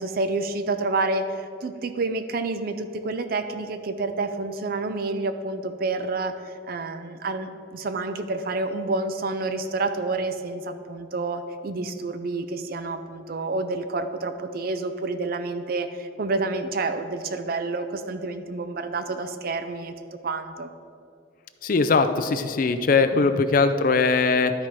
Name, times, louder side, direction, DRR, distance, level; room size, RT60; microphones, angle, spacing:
voice 1, 0.0-6.3 6.7-19.9 20.2-20.7 23.1-23.4, right 3 dB, 50° right, 9 dB, 0.5 m, -29 dB
voice 2, 21.6-24.5, left 4 dB, 45° left, 10 dB, 0.4 m, -20 dB
12.0 x 4.4 x 4.6 m, 2.4 s
head